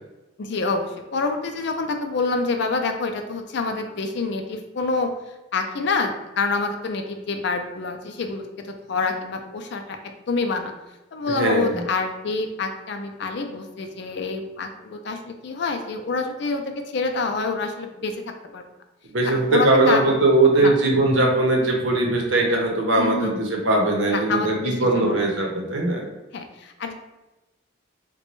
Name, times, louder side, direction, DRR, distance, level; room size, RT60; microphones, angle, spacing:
voice 1, 0.4-5.1 5.5-10.0 10.3-10.7 11.1-18.2 18.5-18.6 19.3-20.1 20.6-20.8 23.0-23.3 24.1-25.3 26.3-26.9, left 3 dB, 60° left, 5 dB, 0.4 m, -27 dB
voice 2, 11.3-11.8 19.1-26.0, right 2 dB, 80° right, 0 dB, 0.8 m, -20 dB
3.9 x 2.2 x 3.0 m, 1.1 s
head